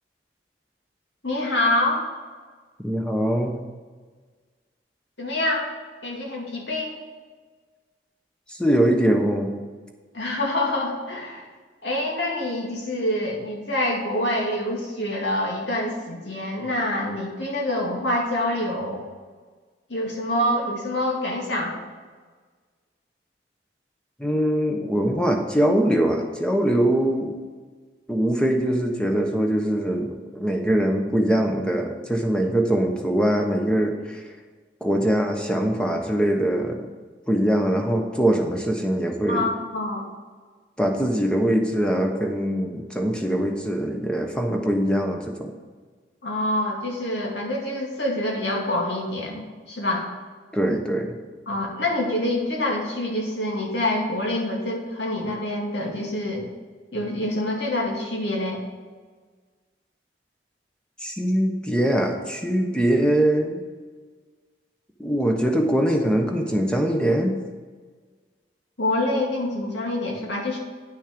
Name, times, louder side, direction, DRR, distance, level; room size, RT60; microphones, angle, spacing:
voice 1, 1.2-2.0 5.2-5.7 6.0-7.0 10.1-11.5 11.8-19.0 19.9-21.8 39.3-40.1 46.2-50.1 51.5-56.4 56.9-58.6 68.8-70.6, left 1 dB, 80° left, -1 dB, 2.4 m, -26 dB
voice 2, 2.8-3.7 8.5-9.5 24.2-27.4 28.1-34.2 34.8-36.9 37.3-39.5 40.8-45.5 50.5-51.1 61.0-63.6 65.0-67.4, right 1 dB, 5° left, 2 dB, 1.0 m, -22 dB
10.0 x 6.3 x 5.2 m, 1.4 s
head